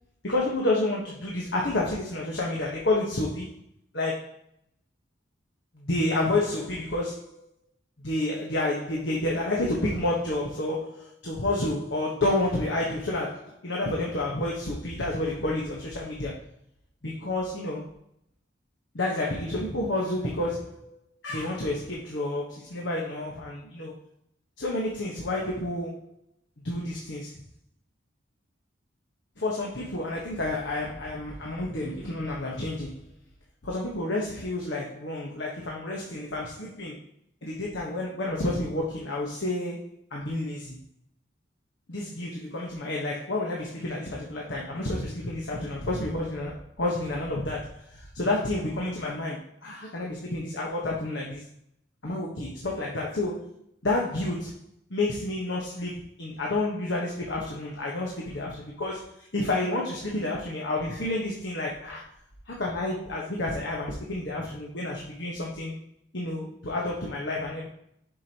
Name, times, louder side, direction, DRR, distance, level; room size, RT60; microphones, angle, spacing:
voice 1, 0.2-3.5 3.9-4.3 5.7-7.4 8.0-16.4 17.0-17.9 18.9-20.9 21.2-23.9 24.6-26.1 26.6-27.3 29.4-33.0 33.6-37.0 37.4-40.8 41.9-51.4 52.0-53.5 53.8-54.5 54.9-62.0 62.5-65.7 66.1-67.7, left 2 dB, 70° left, -3 dB, 1.3 m, -30 dB
7.9 x 6.1 x 2.9 m, 0.74 s
head